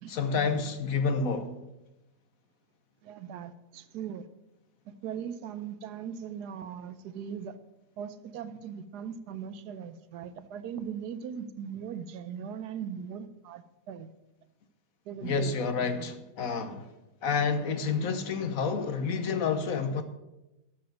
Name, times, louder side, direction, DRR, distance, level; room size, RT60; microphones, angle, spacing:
voice 1, 0.1-1.5 15.2-16.9 17.2-20.0, left 5 dB, 60° left, 1.2 m, -29 dB
voice 2, 3.0-4.3 4.8-7.6 8.0-14.1 15.1-16.2, right 8 dB, 75° right, 1.2 m, -39 dB
12.0 x 6.9 x 6.4 m
omnidirectional pair, 1.8 m